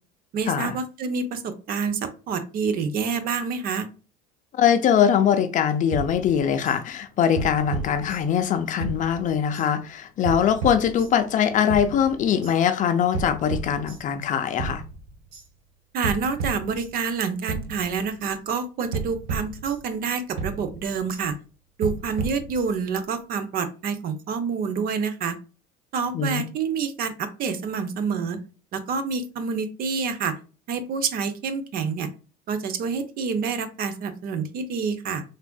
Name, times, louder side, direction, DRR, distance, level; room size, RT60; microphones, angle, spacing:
voice 1, 0.3-3.9 15.9-21.3 21.8-25.4 25.9-28.4 28.7-30.3 30.7-32.1 32.5-35.2, right 5 dB, 50° right, 0.6 m, -27 dB
voice 2, 4.6-14.8 26.1-26.4, left 8 dB, 40° left, 0.5 m, -22 dB
sound 1, 5.9-6.8 7.4-8.5 8.8-9.7 10.2-11.3 11.7-12.6 13.1-14.3 14.6-15.5 16.0-17.2 17.5-18.3 18.9-20.1 20.4-21.2 21.8-23.0, right 4 dB, 85° right, 1.1 m, -33 dB
3.3 x 2.5 x 2.2 m
supercardioid pair, 95°, 20 cm